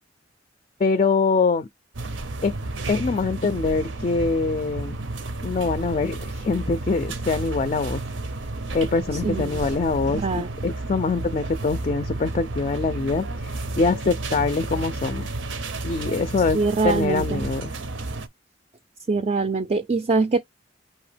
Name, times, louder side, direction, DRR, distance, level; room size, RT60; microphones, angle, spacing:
voice 1, 0.8-1.7 2.4-2.5 2.9-5.0 5.4-8.0 8.7-13.5 13.8-15.3 15.8-16.6 16.8-17.7, left 4 dB, 35° left, 0.3 m, -24 dB
sound 1, 1.9-18.3, right 2 dB, 85° right, 0.7 m, -31 dB
voice 2, 9.2-9.6 10.2-10.5 16.5-17.5 19.1-20.4, right 4 dB, 35° right, 0.4 m, -23 dB
5.6 x 2.8 x 3.3 m
head